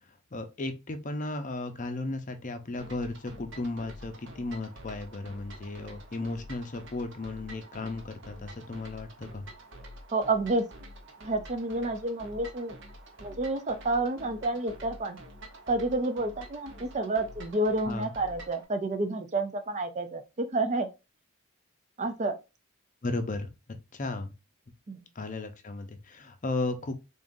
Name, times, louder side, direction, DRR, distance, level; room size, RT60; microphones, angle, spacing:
voice 1, 0.3-9.5 17.8-18.1 23.0-24.3 25.1-26.9, left 2 dB, 35° left, 0.6 m, -35 dB
sound 1, 2.8-18.6, right 1 dB, 55° right, 0.9 m, -48 dB
voice 2, 10.1-10.6 11.2-12.7 13.2-15.2 15.7-20.9 22.0-22.4 24.9-25.0, right 2 dB, 30° right, 0.5 m, -29 dB
3.8 x 3.7 x 2.6 m
head